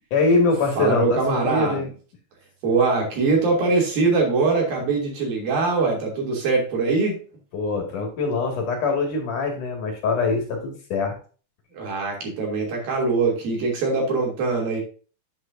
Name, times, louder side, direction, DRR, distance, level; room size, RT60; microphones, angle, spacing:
voice 1, 0.1-1.9 7.5-11.2, left 3 dB, 55° left, 1 dB, 3.4 m, -23 dB
voice 2, 0.8-1.8 2.6-7.2 11.7-14.8, right 4 dB, 60° right, -1 dB, 4.6 m, -22 dB
9.6 x 8.5 x 2.7 m, 0.37 s
omnidirectional pair, 4.6 m